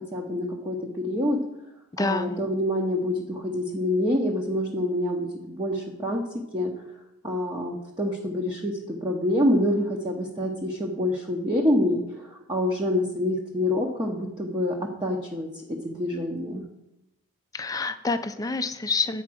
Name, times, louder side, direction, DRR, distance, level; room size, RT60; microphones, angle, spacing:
voice 1, 0.0-1.4 2.0-6.2 6.5-6.7 7.2-15.5 15.8-16.6, left 1 dB, 20° right, -2 dB, 0.7 m, -26 dB
voice 2, 1.9-2.4 17.5-19.2, left 3 dB, 15° left, 9 dB, 0.4 m, -27 dB
8.6 x 4.6 x 6.1 m, 0.88 s
head